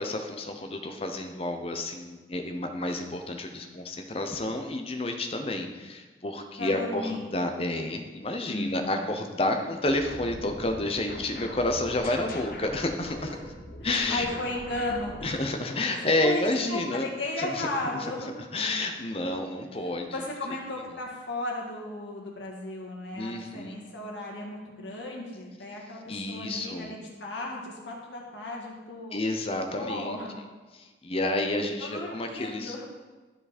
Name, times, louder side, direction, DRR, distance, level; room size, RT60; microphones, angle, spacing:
voice 1, 0.0-13.4 13.8-14.3 15.2-17.1 17.4-17.7 17.9-18.1 18.5-20.2 23.1-23.8 26.1-26.9 29.1-30.2 30.7-32.9, left 2 dB, 30° left, 5 dB, 0.8 m, -30 dB
voice 2, 6.6-7.2 8.5-9.0 13.1-13.5 13.8-15.5 15.9-16.4 16.7-18.3 20.1-26.0 26.3-29.2 29.7-30.4 31.8-32.9, left 2 dB, 80° left, -2 dB, 1.9 m, -35 dB
sound 1, 9.9-16.1, left 1 dB, 50° left, 1.2 m, -42 dB
12.5 x 4.8 x 4.3 m, 1.3 s
head